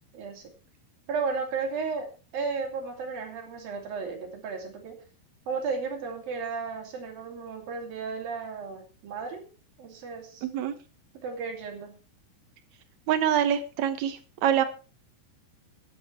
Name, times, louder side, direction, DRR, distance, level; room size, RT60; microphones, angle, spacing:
voice 1, 0.1-0.5 1.1-5.0 5.5-9.4 9.8-10.5 11.2-12.0, right 4 dB, 60° right, 2 dB, 4.4 m, -34 dB
voice 2, 10.4-10.7 13.1-14.6, right 9 dB, 80° right, 9 dB, 1.6 m, -25 dB
12.5 x 10.5 x 4.7 m, 0.35 s
omnidirectional pair, 4.9 m